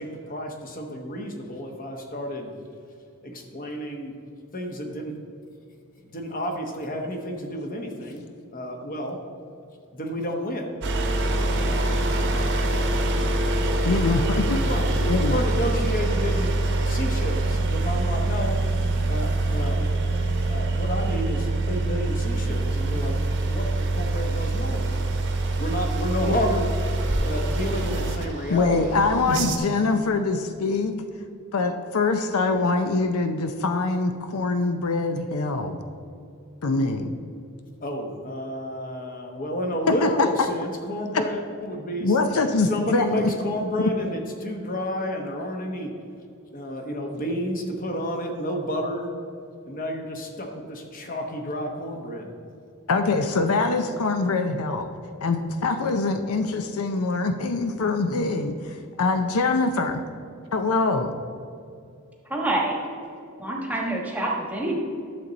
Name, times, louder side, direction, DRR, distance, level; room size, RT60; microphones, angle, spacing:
voice 1, 0.0-2.5 3.2-4.1 4.5-5.2 6.0-9.2 9.9-10.7 11.6-11.9 12.2-12.3 14.7-14.9 15.3-18.6 19.1-19.9 20.4-25.1 25.6-26.7 27.2-29.2 37.8-42.2 42.6-45.9 46.5-49.1 49.6-52.3, equal, 40° left, 3 dB, 1.1 m, -30 dB
sound 1, 10.8-29.6, right 2 dB, 55° right, 1.0 m, -25 dB
voice 2, 13.8-14.6 15.0-15.4 28.5-31.0 31.5-35.8 36.6-37.1 40.0-40.3 42.0-43.1 52.9-54.9 55.2-60.0 60.5-61.1, left 3 dB, 75° left, 8 dB, 0.5 m, -24 dB
voice 3, 62.2-62.8 63.4-64.8, right 2 dB, 5° right, -1 dB, 1.2 m, -27 dB
11.5 x 6.8 x 4.0 m, 2.4 s
head